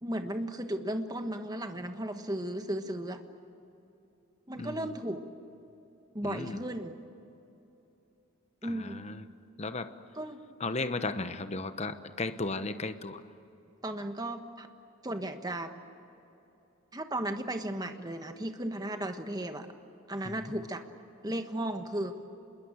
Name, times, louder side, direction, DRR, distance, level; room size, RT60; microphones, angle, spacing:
voice 1, 0.0-3.2 4.5-5.2 6.1-7.0 8.6-9.0 10.1-10.4 13.8-14.7 15.0-15.7 16.9-19.7 20.1-20.8 21.2-22.2, right 1 dB, 20° right, 7 dB, 1.3 m, -35 dB
voice 2, 4.6-4.9 6.2-6.6 8.6-9.2 9.6-10.0 10.6-13.2 20.2-20.3, left 3 dB, 30° left, 10 dB, 1.0 m, -35 dB
27.0 x 21.5 x 8.9 m, 2.9 s
head